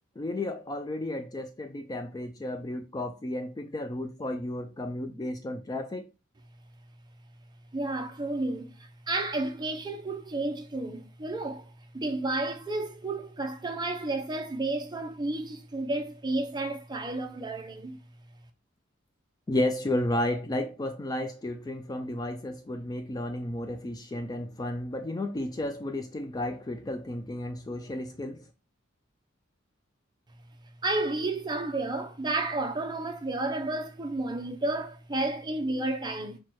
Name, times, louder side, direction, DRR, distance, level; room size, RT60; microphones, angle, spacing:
voice 1, 0.2-6.1 19.5-28.4, left 1 dB, 20° left, 0.3 m, -32 dB
voice 2, 7.7-18.0 30.8-36.4, right 2 dB, 20° right, 0.6 m, -31 dB
4.5 x 2.2 x 4.3 m
head